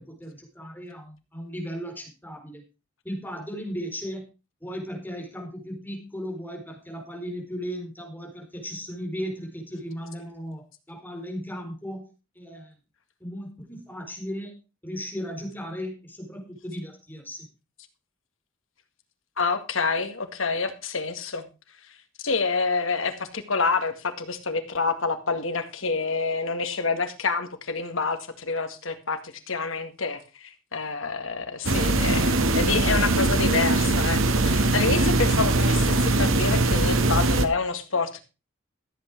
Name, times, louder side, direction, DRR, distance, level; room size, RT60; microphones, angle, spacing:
voice 1, 0.0-2.6 3.0-4.3 4.6-12.0 12.4-12.7 13.2-14.6 14.8-17.5, equal, 10° left, 1 dB, 4.1 m, -36 dB
voice 2, 19.4-21.5 22.2-38.2, left 4 dB, 75° left, 8 dB, 2.0 m, -28 dB
sound 1, 31.6-37.5, right 2 dB, 80° right, 1.6 m, -21 dB
14.5 x 8.3 x 4.6 m, 0.30 s
head